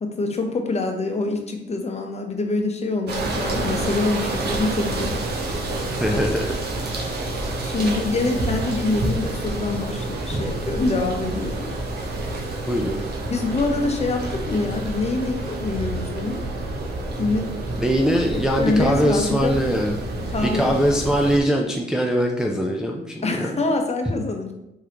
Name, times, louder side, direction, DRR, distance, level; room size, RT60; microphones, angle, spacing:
voice 1, 0.0-5.2 6.1-6.2 7.6-11.7 13.3-16.4 17.2-17.5 18.3-19.6 20.3-20.8 23.2-24.5, left 3 dB, 35° left, 4 dB, 0.8 m, -25 dB
sound 1, 3.1-21.4, right 2 dB, 55° right, 1.2 m, -28 dB
voice 2, 5.9-6.5 7.8-7.9 10.3-10.4 12.7-13.0 17.8-20.0 20.4-23.6, equal, 5° right, 0 dB, 0.4 m, -22 dB
4.8 x 3.7 x 2.9 m, 0.89 s
cardioid pair, 90°, 20 cm